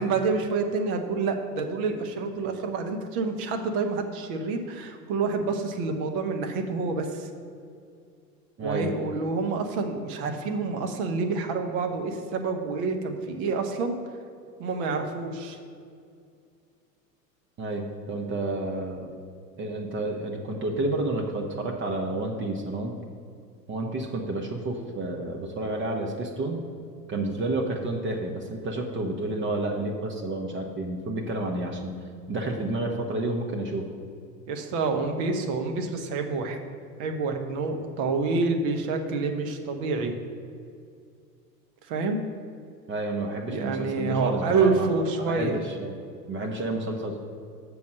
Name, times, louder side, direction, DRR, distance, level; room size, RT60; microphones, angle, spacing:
voice 1, 0.0-7.3 8.6-14.0 14.6-15.6 34.5-36.6 37.0-40.1 41.9-42.2 43.5-45.5, right 4 dB, 50° right, 5 dB, 1.1 m, -28 dB
voice 2, 8.6-8.9 17.6-19.1 19.6-23.0 23.7-26.6 27.1-33.9 42.9-45.9 46.3-47.2, right 2 dB, 25° right, 1 dB, 0.8 m, -30 dB
7.0 x 4.8 x 6.4 m, 2.4 s
figure-of-eight pair, 85°, 49 cm